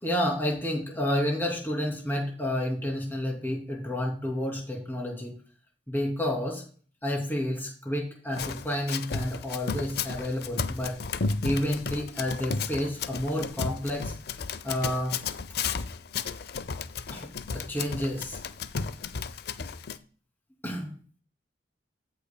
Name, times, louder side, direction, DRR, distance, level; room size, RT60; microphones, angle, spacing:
voice 1, 0.0-5.3 5.9-6.6 7.0-11.0 11.4-14.1 14.6-15.2 17.1-18.4 20.6-20.9, left 1 dB, 10° left, -1 dB, 2.7 m, -30 dB
Run, 8.3-20.0, left 5 dB, 60° left, 0.5 m, -33 dB
16.0 x 5.8 x 2.2 m, 0.41 s
head